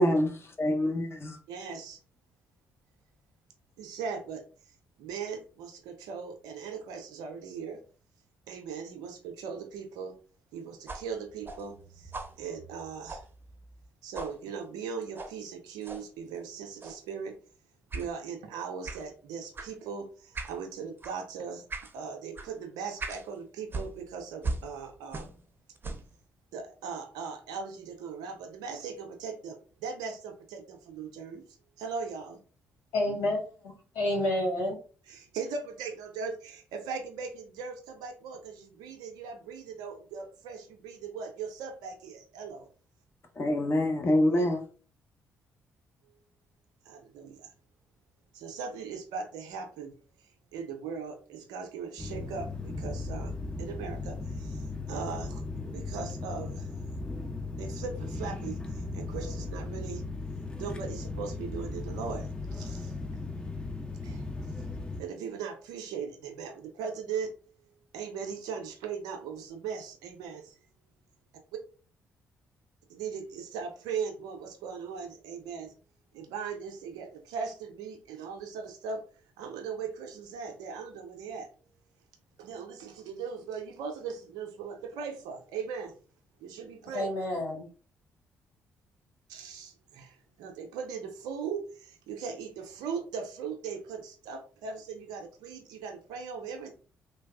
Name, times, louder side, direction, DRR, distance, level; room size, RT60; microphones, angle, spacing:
voice 1, 0.0-0.3 0.6-1.4 43.4-44.6, left 1 dB, 40° left, 0.9 m, -25 dB
voice 2, 1.5-2.0 3.8-7.8 8.5-10.1 10.5-12.1 12.4-13.2 14.0-17.3 17.9-21.6 21.9-25.3 26.5-32.4 35.1-42.6 44.3-44.5 46.1-46.2 46.8-47.5 48.3-55.4 55.7-56.7 57.6-60.0 60.5-63.0 64.0-64.3 65.0-67.3 67.7-70.6 72.9-75.7 76.1-79.0 79.4-81.5 82.4-85.9 86.4-87.1 89.3-96.7, right 6 dB, 75° right, 0.5 m, -39 dB
sound 1, 10.9-13.9 14.1-14.4 15.1-15.4 15.8-16.1 16.8-17.1 17.9-18.1 18.8-19.1 19.5-19.7 20.3-20.6 21.0-21.2 21.7-21.9 22.4-22.5 23.0-23.3 23.7-25.5 25.8-26.1, right 3 dB, 30° right, 0.6 m, -39 dB
voice 3, 32.9-33.4 33.9-34.8 86.9-87.7, left 1 dB, 80° left, 1.4 m, -28 dB
sound 2, 52.0-65.0, left 3 dB, 15° left, 0.5 m, -37 dB
3.2 x 2.2 x 2.3 m
hypercardioid pair, 45°, 7 cm